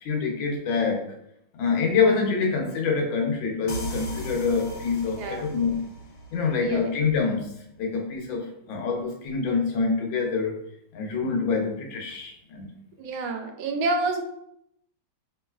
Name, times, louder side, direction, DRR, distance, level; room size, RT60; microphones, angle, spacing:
voice 1, 0.0-1.1 1.5-5.9 6.3-7.5 7.8-10.5 10.9-12.7, left 4 dB, 80° left, 1 dB, 1.5 m, -26 dB
sound 1, 3.7-7.2, equal, 60° left, 1.3 m, -37 dB
voice 2, 5.2-5.5 6.6-6.9 13.0-14.2, right 3 dB, 85° right, 5 dB, 1.4 m, -28 dB
5.2 x 3.1 x 2.3 m, 0.76 s
omnidirectional pair, 2.1 m